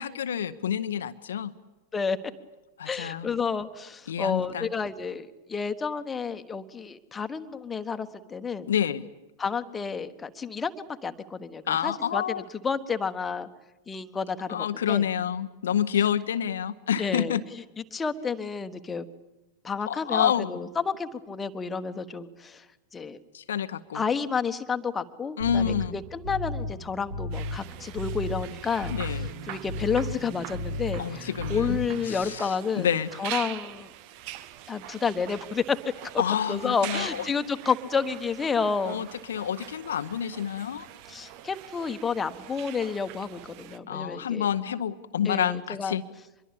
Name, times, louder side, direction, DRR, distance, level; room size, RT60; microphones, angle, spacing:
voice 1, 0.0-1.5 2.8-3.3 4.1-4.7 8.7-9.1 11.7-12.4 14.5-17.4 19.9-20.5 23.3-24.0 25.4-26.0 28.9-29.3 31.0-31.8 32.0-33.1 36.2-37.3 38.8-40.9 43.9-46.0, left 9 dB, 65° left, 10 dB, 0.8 m, -28 dB
voice 2, 2.8-8.7 9.4-12.4 12.6-13.5 13.9-15.0 17.0-17.4 17.9-19.1 19.6-22.6 22.9-23.2 23.9-32.9 33.2-33.9 34.7-35.8 36.5-39.1 41.1-44.5 45.2-46.0, left 5 dB, 15° left, 8 dB, 1.3 m, -30 dB
sound 1, 25.4-32.2, left 1 dB, 65° right, 3.6 m, -35 dB
sound 2, 27.3-43.8, right 13 dB, 45° right, 1.0 m, -43 dB
25.0 x 22.5 x 8.7 m, 1.0 s
figure-of-eight pair, 90°, 0 cm